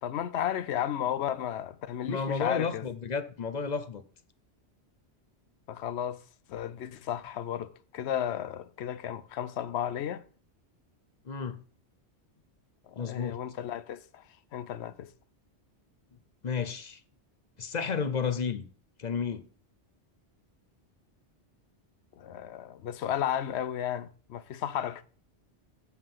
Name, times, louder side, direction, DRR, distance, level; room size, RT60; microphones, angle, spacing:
voice 1, 0.0-2.8 5.7-6.2 6.5-10.2 12.8-14.2 14.5-15.1 22.2-25.0, left 10 dB, 75° left, 0.9 m, -33 dB
voice 2, 2.0-4.0 11.2-11.6 12.9-13.4 16.4-17.0 17.6-18.7 19.0-19.5, left 5 dB, 45° left, 0.7 m, -32 dB
7.3 x 5.6 x 5.7 m
omnidirectional pair, 1.1 m